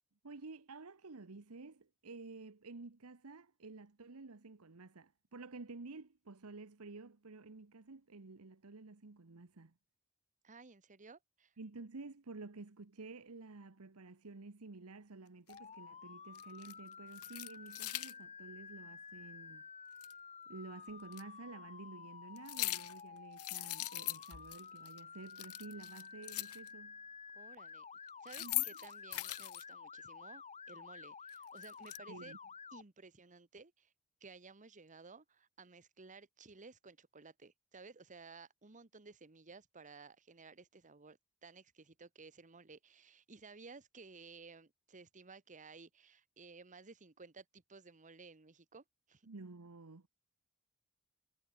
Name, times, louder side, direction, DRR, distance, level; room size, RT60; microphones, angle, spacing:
voice 1, 0.2-9.7 11.6-19.7 20.5-27.0 28.4-28.6 32.1-32.4 49.3-50.1, right 3 dB, 75° right, 1.1 m, -51 dB
voice 2, 10.4-11.5 27.3-27.8 28.2-32.3 32.7-33.9 34.2-49.3, right 4 dB, 35° right, 1.3 m, -56 dB
sound 1, 15.5-15.6 16.4-16.7 17.1-18.1 20.0-20.1 21.1-21.2 22.4-23.0 23.4-24.6 24.9-25.0 25.3-26.7 28.1-29.6 31.3-32.0, left 18 dB, 75° left, 0.9 m, -40 dB
Motor vehicle (road) / Siren, 15.5-32.8, left 6 dB, 30° left, 1.7 m, -52 dB
head